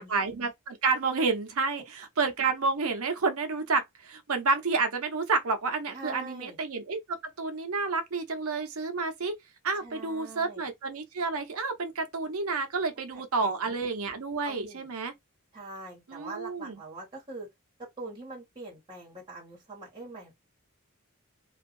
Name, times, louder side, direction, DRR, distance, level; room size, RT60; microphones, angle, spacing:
voice 1, 0.0-9.4 9.6-15.1 16.1-16.8, right 4 dB, 70° right, 0.7 m, -30 dB
voice 2, 5.9-6.6 9.8-10.7 13.1-13.8 14.4-14.9 15.5-17.5 17.8-20.5, right 3 dB, 20° right, 1.4 m, -43 dB
2.6 x 2.4 x 2.5 m
head